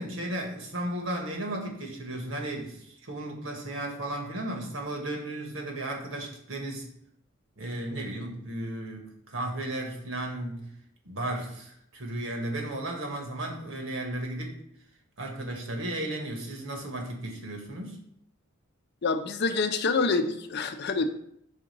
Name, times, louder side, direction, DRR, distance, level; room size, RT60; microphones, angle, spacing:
voice 1, 0.0-6.9 7.6-10.7 11.0-14.6 15.2-18.0, right 1 dB, 75° right, 2 dB, 1.4 m, -34 dB
voice 2, 19.0-21.0, left 4 dB, 55° left, 8 dB, 0.5 m, -26 dB
5.0 x 3.8 x 5.2 m, 0.71 s
head